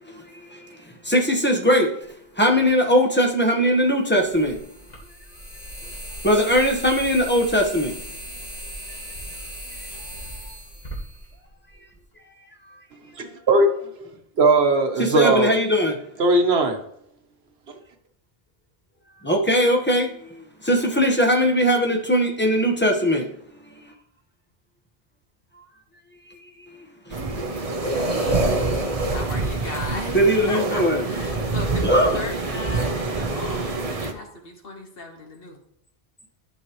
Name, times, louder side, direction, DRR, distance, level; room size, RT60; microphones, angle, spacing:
voice 1, 0.5-1.9 2.4-4.6 6.2-7.9 15.0-16.0 19.2-20.1 20.6-23.3 30.1-31.0 31.8-32.1, equal, 10° left, 1.2 m, -20 dB
sound 1, 2.6-2.7 4.1-12.0, right 1 dB, 40° left, 1.9 m, -37 dB
voice 2, 13.2-14.1 14.4-15.5 16.2-16.8, right 2 dB, 80° right, 1.3 m, -19 dB
sound 2, 27.1-34.1, right 2 dB, 40° right, 0.9 m, -26 dB
voice 3, 27.8-30.2 30.5-35.6, left 3 dB, 65° left, 1.5 m, -36 dB
12.0 x 5.4 x 3.1 m
omnidirectional pair, 1.0 m